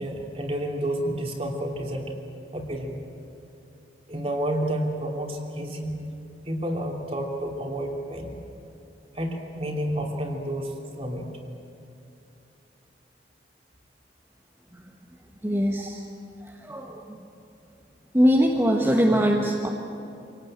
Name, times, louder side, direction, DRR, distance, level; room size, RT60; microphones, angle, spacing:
voice 1, 0.0-2.1 2.5-3.0 4.1-6.0 6.4-8.3 9.1-11.3, right 1 dB, 35° right, 1 dB, 3.1 m, -30 dB
voice 2, 15.4-16.0 16.4-17.2 18.1-19.7, equal, 15° right, -1 dB, 1.5 m, -22 dB
26.0 x 18.5 x 8.9 m, 2.7 s
head